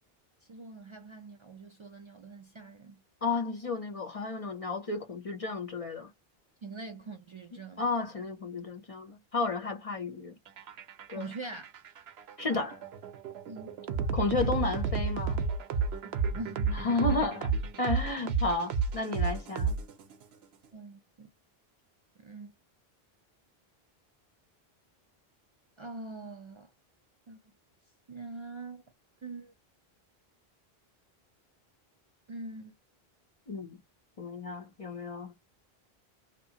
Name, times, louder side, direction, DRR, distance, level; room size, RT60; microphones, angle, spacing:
voice 1, 0.5-3.0 6.6-7.9 11.1-11.7 13.5-14.6 16.0-16.7 20.7-21.3 22.2-22.5 25.8-26.7 27.3-27.4 28.1-28.8 29.2-29.5 32.3-32.7, right 3 dB, 55° right, 0.3 m, -43 dB
voice 2, 3.2-6.1 7.8-10.4 11.1-11.3 12.4-12.8 14.1-15.4 16.7-17.5 17.8-19.7 33.5-33.8 34.2-35.3, left 3 dB, 40° left, 0.6 m, -32 dB
sound 1, 10.5-20.2, right 5 dB, 85° right, 0.9 m, -32 dB
2.9 x 2.2 x 2.7 m
omnidirectional pair, 1.0 m